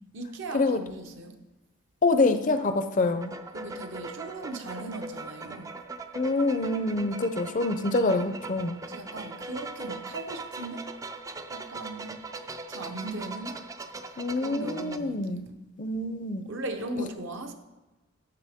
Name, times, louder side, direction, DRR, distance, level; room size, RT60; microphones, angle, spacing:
voice 1, 0.1-1.4 3.5-5.8 8.9-10.9 11.5-12.1 12.7-13.6 14.4-15.4 16.4-17.5, right 2 dB, 60° right, 0.9 m, -38 dB
voice 2, 2.0-3.3 6.1-8.8 14.2-15.4 15.8-16.5 17.0-17.1, left 2 dB, 40° left, 0.5 m, -26 dB
sound 1, 3.1-15.0, right 3 dB, 15° right, 0.4 m, -40 dB
12.5 x 6.9 x 3.5 m
head